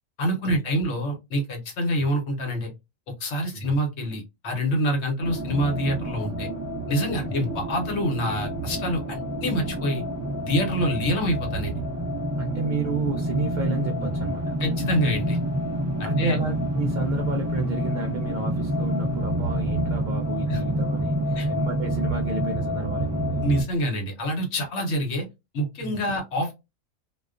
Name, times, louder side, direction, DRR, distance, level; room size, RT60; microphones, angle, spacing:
voice 1, 0.2-2.7 3.2-6.5 6.9-10.0 10.4-11.8 14.6-15.4 16.0-16.4 20.5-20.6 21.3-21.5 23.4-25.3 25.5-26.5, equal, 60° left, 1.0 m, -26 dB
sound 1, 5.2-23.6, right 1 dB, 15° right, 0.6 m, -28 dB
voice 2, 12.4-14.6 16.0-23.4 25.8-26.0, right 3 dB, 80° right, 0.4 m, -31 dB
2.3 x 2.2 x 2.4 m
omnidirectional pair, 1.4 m